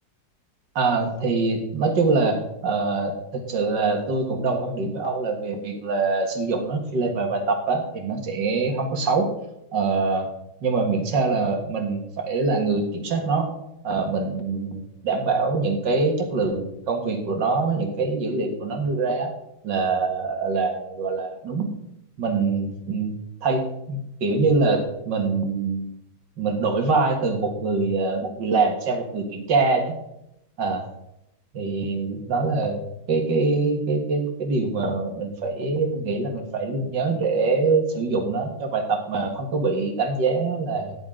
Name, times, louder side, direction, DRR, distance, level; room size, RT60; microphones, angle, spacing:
voice 1, 0.8-9.3 9.7-10.3 10.6-13.5 13.8-19.3 19.6-21.7 22.2-23.1 23.4-25.9 26.4-30.0 30.6-30.9 31.5-32.8 33.1-41.0, right 3 dB, 85° right, 3 dB, 2.4 m, -24 dB
14.0 x 9.9 x 3.8 m, 0.83 s
omnidirectional pair, 1.9 m